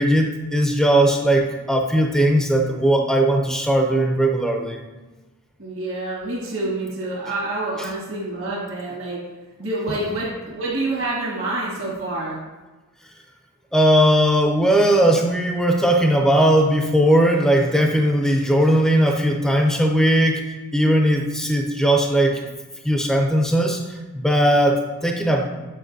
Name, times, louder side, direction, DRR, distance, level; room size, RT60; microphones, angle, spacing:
voice 1, 0.0-4.8 13.7-20.4 20.7-22.4 22.8-25.5, right 1 dB, ahead, 2 dB, 0.5 m, -18 dB
voice 2, 5.6-9.2 9.6-12.4, right 2 dB, 60° right, -7 dB, 1.6 m, -27 dB
7.5 x 5.1 x 2.6 m, 1.2 s
head